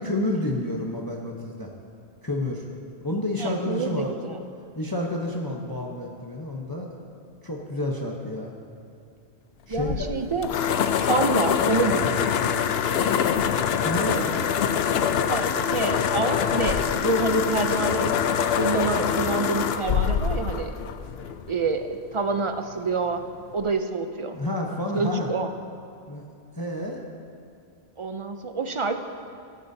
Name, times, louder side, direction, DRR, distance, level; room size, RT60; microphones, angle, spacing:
voice 1, 0.0-1.7 2.2-2.6 3.0-4.1 4.8-6.9 7.4-8.5 9.7-10.1 13.8-14.3 24.3-25.3 26.1-26.3 26.5-27.0, left 1 dB, 20° left, -1 dB, 0.8 m, -29 dB
voice 2, 3.4-4.4 9.7-10.7 11.0-12.3 15.3-20.8 21.5-23.2 23.5-24.4 24.9-25.5 28.0-29.0, right 3 dB, 45° right, 7 dB, 0.4 m, -27 dB
sound 1, 9.7-21.6, left 8 dB, 70° left, 0.8 m, -24 dB
19.0 x 10.5 x 2.7 m, 2.5 s
omnidirectional pair, 1.1 m